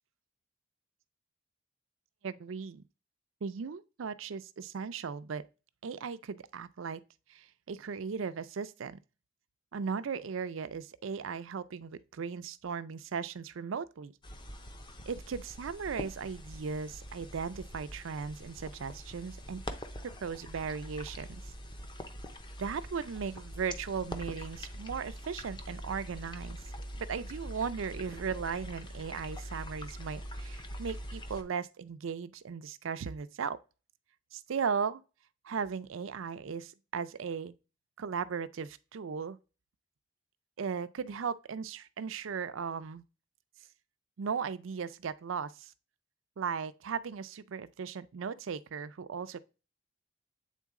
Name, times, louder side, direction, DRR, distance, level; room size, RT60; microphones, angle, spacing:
voice 1, 2.2-2.8 3.4-5.4 5.8-7.0 7.3-9.0 9.7-14.1 15.1-19.6 20.0-21.4 22.6-26.6 27.0-33.6 34.3-35.0 35.4-37.5 38.0-39.4 40.6-43.0 44.2-45.7 46.4-49.4, right 6 dB, 85° right, 0.5 m, -37 dB
sound 1, 14.2-31.4, equal, 25° left, 0.7 m, -44 dB
8.3 x 3.8 x 3.6 m
head